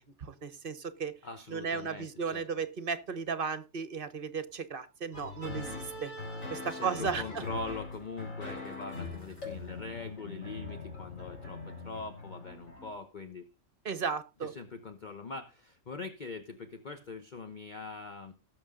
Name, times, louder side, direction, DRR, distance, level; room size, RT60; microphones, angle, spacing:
voice 1, 0.2-1.1 1.5-6.1 6.5-7.4 13.8-14.5, right 5 dB, 45° right, 13 dB, 1.1 m, -35 dB
voice 2, 1.2-2.4 6.6-13.5 14.4-18.3, left 4 dB, 40° left, 7 dB, 1.1 m, -42 dB
sound 1, 5.1-12.9, left 3 dB, 90° left, 4.7 m, -41 dB
18.0 x 7.1 x 3.7 m, 0.29 s
omnidirectional pair, 1.3 m